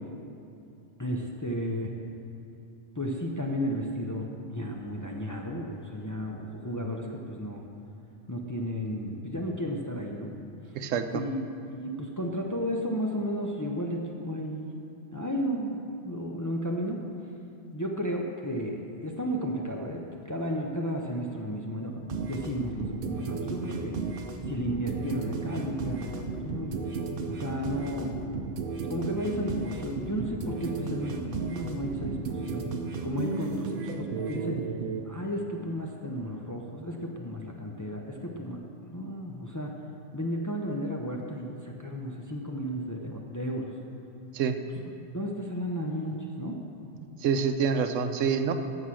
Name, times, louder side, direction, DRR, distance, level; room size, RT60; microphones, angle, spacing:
voice 1, 1.0-1.9 2.9-7.7 8.3-10.3 11.1-14.7 15.1-17.0 17.7-20.0 20.3-24.0 24.5-28.1 28.9-32.7 33.0-34.6 35.0-38.6 38.9-39.7 40.1-43.7 45.1-46.6, equal, 20° left, 0 dB, 0.5 m, -33 dB
voice 2, 10.7-11.2 44.3-44.6 47.2-48.5, right 6 dB, 90° right, 8 dB, 1.0 m, -26 dB
sound 1, 22.1-35.0, right 4 dB, 50° right, 0.8 m, -34 dB
14.0 x 4.8 x 6.3 m, 2.7 s
omnidirectional pair, 1.3 m